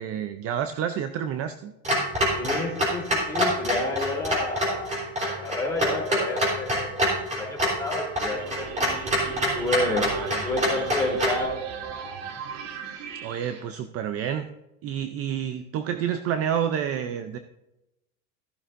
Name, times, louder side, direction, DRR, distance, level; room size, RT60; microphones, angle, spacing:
voice 1, 0.0-1.7 9.7-10.4 13.2-14.5 14.8-17.4, right 9 dB, 35° right, 9 dB, 0.5 m, -29 dB
Clock, 1.8-11.4, equal, 20° right, 3.6 m, -26 dB
voice 2, 2.3-5.0 5.2-7.0 7.3-8.9 9.5-10.0 10.4-11.5, left 2 dB, 5° left, -2 dB, 3.2 m, -30 dB
sound 1, 8.1-13.6, right 6 dB, 60° right, 1.6 m, -37 dB
14.0 x 11.0 x 2.6 m, 0.95 s
supercardioid pair, 135°, 40 cm